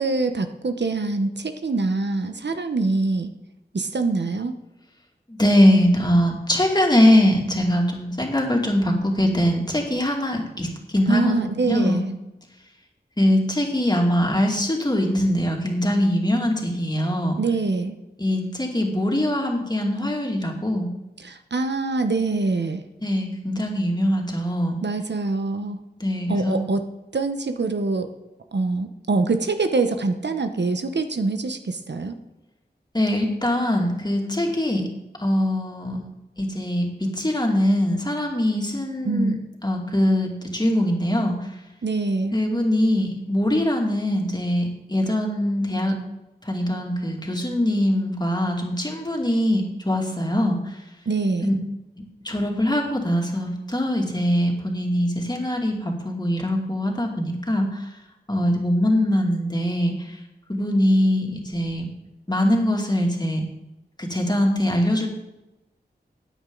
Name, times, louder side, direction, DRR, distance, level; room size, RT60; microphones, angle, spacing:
voice 1, 0.0-3.3 3.7-4.6 11.1-12.1 17.4-18.0 21.2-22.8 24.8-25.8 26.3-26.8 27.1-28.1 28.5-32.2 39.0-39.4 41.8-42.4 51.1-51.5, right 3 dB, 80° right, 7 dB, 1.0 m, -24 dB
voice 2, 5.3-12.1 13.2-17.4 18.2-20.9 23.0-24.8 26.0-26.6 32.9-34.8 35.2-36.0 36.4-39.4 39.6-41.4 42.3-46.0 46.4-50.7 51.4-51.5 52.2-57.8 58.3-59.9 60.5-61.9 62.3-63.4 64.0-65.1, left 1 dB, 25° left, 0 dB, 2.6 m, -22 dB
15.0 x 9.3 x 3.9 m, 0.97 s
wide cardioid pair, 75°, 18 cm